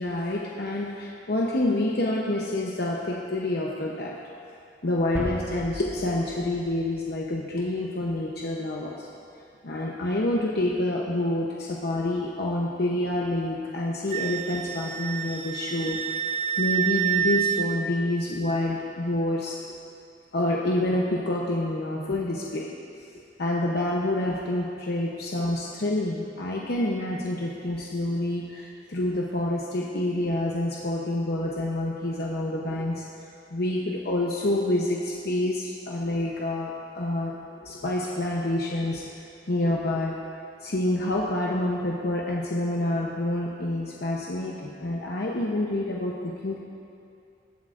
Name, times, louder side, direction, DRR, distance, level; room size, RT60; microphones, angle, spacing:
voice 1, 0.0-4.2 4.8-9.1 9.6-16.0 16.6-19.6 20.3-22.7 23.0-23.1 23.4-33.1 33.5-37.4 37.6-39.1 39.5-40.3 40.6-46.6, left 1 dB, 60° left, -3 dB, 0.8 m, -27 dB
sound 1, 5.1-7.6, equal, 15° right, 1.2 m, -37 dB
Wind instrument woodwind instrument, 14.1-17.7, right 9 dB, 35° right, 0.3 m, -28 dB
20.0 x 7.6 x 2.5 m, 2.5 s
head